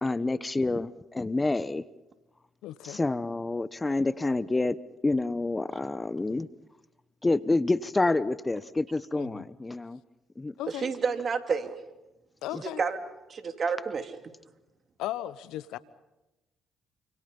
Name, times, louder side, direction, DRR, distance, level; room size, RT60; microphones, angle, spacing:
voice 1, 0.0-1.8 2.8-4.8 5.0-6.5 7.2-10.0 10.4-10.5, left 2 dB, 20° left, 1.0 m, -28 dB
voice 2, 2.6-3.0 9.2-9.4 10.6-10.9 12.4-12.8 15.0-15.8, left 13 dB, 80° left, 1.0 m, -36 dB
voice 3, 10.7-11.7 12.6-13.0 13.3-14.2, right 5 dB, 50° right, 3.0 m, -30 dB
29.5 x 27.0 x 5.5 m
supercardioid pair, 55°, 0 cm